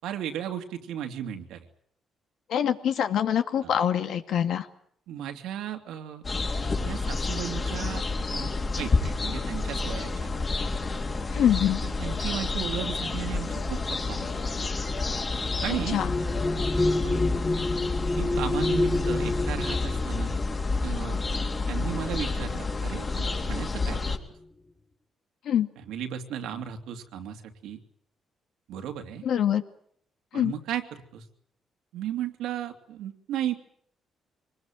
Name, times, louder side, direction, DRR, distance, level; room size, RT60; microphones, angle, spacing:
voice 1, 0.0-1.7 3.6-3.7 5.1-6.2 6.8-8.0 8.3-10.3 11.8-14.3 15.6-16.0 17.0-17.2 18.2-20.3 20.8-21.2 21.7-24.0 25.9-27.8 28.7-29.2 30.3-31.2 31.9-33.5, right 10 dB, 90° right, 5 dB, 2.6 m, -35 dB
voice 2, 2.5-4.7 11.3-11.8 15.9-16.1 25.5-25.7 29.2-29.6 30.3-30.5, left 9 dB, 75° left, 8 dB, 2.2 m, -24 dB
sound 1, 6.2-24.2, left 3 dB, 35° left, 3.7 m, -29 dB
sound 2, 13.3-22.2 23.1-23.3 23.6-24.2, left 2 dB, 15° left, 3.8 m, -30 dB
24.5 x 20.5 x 9.1 m, 0.65 s
cardioid pair, 90°, 0 cm